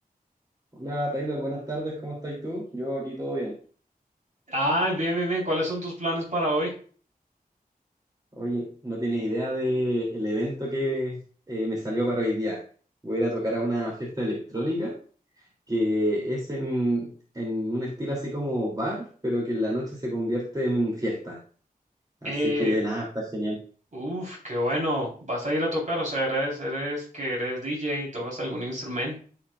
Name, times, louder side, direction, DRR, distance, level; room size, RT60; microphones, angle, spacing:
voice 1, 0.7-3.6 8.4-11.2 11.5-12.6 13.0-14.9 15.7-17.1 17.3-21.4 22.2-23.6, equal, 25° right, -4 dB, 2.8 m, -28 dB
voice 2, 4.5-6.7 22.2-22.8 23.9-29.2, equal, 55° right, -3 dB, 4.0 m, -28 dB
14.0 x 5.1 x 2.4 m, 0.41 s
wide cardioid pair, 80°, 15 cm